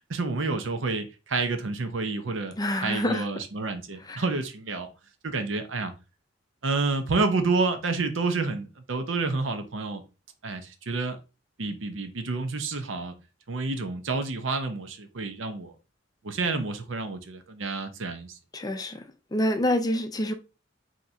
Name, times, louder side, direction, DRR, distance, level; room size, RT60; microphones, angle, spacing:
voice 1, 0.1-2.5 2.8-4.9 5.2-5.9 6.6-10.0 10.4-11.2 11.6-13.1 13.5-15.7 16.2-18.4, right 3 dB, 75° right, 0.7 m, -29 dB
voice 2, 2.6-3.3 4.1-4.2 18.5-19.1 19.3-20.3, left 1 dB, 20° left, 0.5 m, -27 dB
5.5 x 2.9 x 2.7 m
head